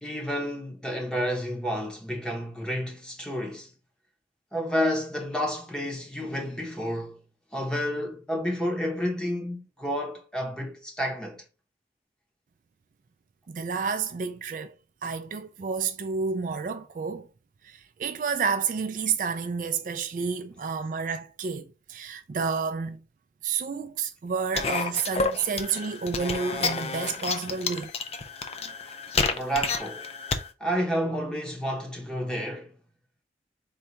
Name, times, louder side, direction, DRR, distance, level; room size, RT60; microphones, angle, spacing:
voice 1, 0.0-3.7 4.5-7.2 7.5-11.4 29.3-30.1 30.6-32.7, equal, 5° left, 0.7 m, -30 dB
voice 2, 13.5-14.7 15.0-17.3 17.6-23.0 23.4-27.9, right 5 dB, 45° right, 0.3 m, -30 dB
sound 1, 24.5-30.5, left 4 dB, 35° left, 0.4 m, -30 dB
3.9 x 2.3 x 4.4 m
head